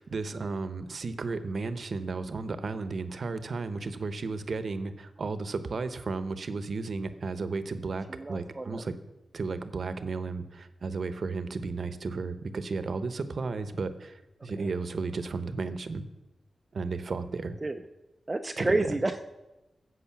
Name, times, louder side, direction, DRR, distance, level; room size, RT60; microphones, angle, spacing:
voice 1, 0.0-8.9 9.3-16.0 16.7-17.5 18.6-19.0, right 4 dB, 60° right, 11 dB, 1.0 m, -34 dB
voice 2, 8.1-8.8 14.6-14.7 17.6-17.8 18.3-19.3, right 2 dB, 30° right, 5 dB, 0.6 m, -30 dB
14.0 x 8.1 x 6.0 m, 1.0 s
wide cardioid pair, 80°, 0 cm